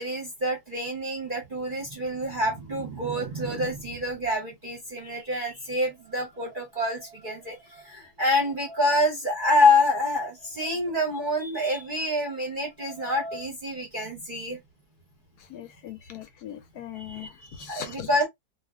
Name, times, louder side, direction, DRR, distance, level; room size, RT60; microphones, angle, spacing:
voice 1, 0.0-14.6 16.9-18.3, left 1 dB, 45° right, 0.7 m, -27 dB
voice 2, 15.5-17.3 17.6-18.1, left 10 dB, 70° left, 1.0 m, -39 dB
2.6 x 2.4 x 2.3 m
omnidirectional pair, 1.8 m